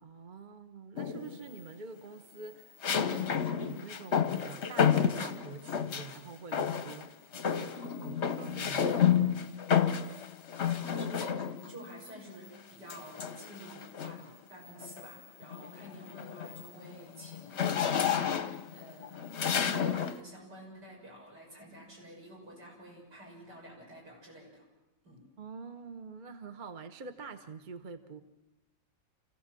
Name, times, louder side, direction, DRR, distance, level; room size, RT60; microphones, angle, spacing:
voice 1, 0.0-7.2 7.5-9.5 25.4-28.2, right 4 dB, 35° right, 9 dB, 1.0 m, -46 dB
sound 1, 1.0-1.5 2.8-6.2 6.5-7.1 7.3-11.8 12.9-14.3 14.8-15.1 15.4-20.2, left 8 dB, 45° left, 1.0 m, -30 dB
voice 2, 10.6-11.4 11.7-24.7 25.0-25.3, equal, 70° right, -3 dB, 7.4 m, -50 dB
27.5 x 16.0 x 7.7 m, 0.98 s
omnidirectional pair, 1.9 m